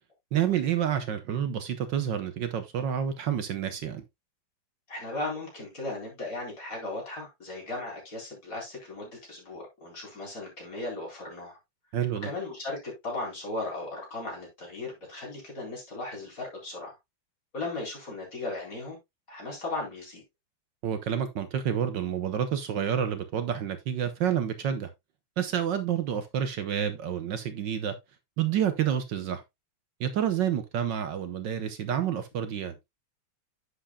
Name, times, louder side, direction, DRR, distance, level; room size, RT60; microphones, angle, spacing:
voice 1, 0.3-4.0 11.9-12.3 20.8-24.9 25.4-28.0 28.4-29.4 30.0-32.7, right 9 dB, 65° right, 1.5 m, -29 dB
voice 2, 4.9-11.6 12.2-17.0 17.5-19.0 19.3-20.2, left 2 dB, 40° left, 4.6 m, -37 dB
10.0 x 8.0 x 2.2 m
omnidirectional pair, 2.2 m